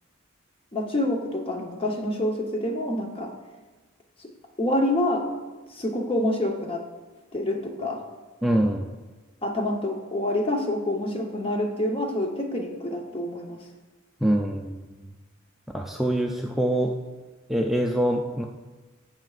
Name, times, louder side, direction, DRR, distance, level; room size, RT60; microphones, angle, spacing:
voice 1, 0.7-3.3 4.2-4.3 4.6-5.3 5.7-6.8 7.3-8.0 9.4-13.7, left 1 dB, 25° left, 2 dB, 0.9 m, -27 dB
voice 2, 8.4-8.9 14.2-15.1 15.7-17.0 17.5-18.4, right 1 dB, ahead, 0 dB, 0.4 m, -24 dB
16.5 x 5.8 x 2.4 m, 1.3 s
head